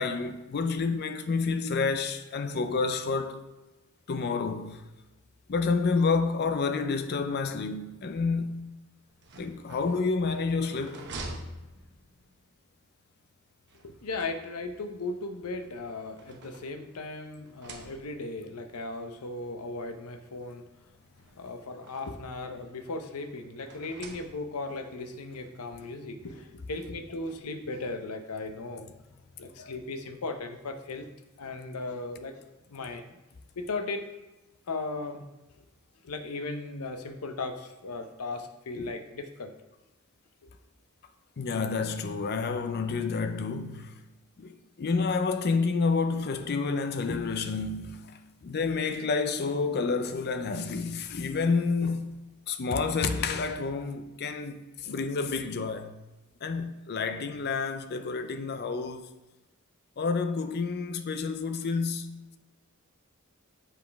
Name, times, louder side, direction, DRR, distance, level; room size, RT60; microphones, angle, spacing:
voice 1, 0.0-3.4 4.1-4.8 5.5-8.7 9.4-11.1 29.6-29.7 38.8-38.9 41.4-43.9 44.4-48.0 48.4-52.2 52.5-56.0 56.4-59.1 60.0-62.4, left 4 dB, 45° left, 0.5 m, -29 dB
sound 1, 9.1-12.4 13.7-14.9 15.7-17.1 17.4-18.4 19.3-19.4 19.7-19.8 21.0-22.4 23.6-24.8, right 2 dB, 50° right, 0.9 m, -46 dB
voice 2, 13.8-20.9 21.4-28.9 29.4-31.1 31.4-32.4 32.7-33.2 33.6-34.0 34.7-35.2 36.0-39.5 40.4-40.5, left 3 dB, 90° left, 0.7 m, -37 dB
7.4 x 5.1 x 3.4 m
head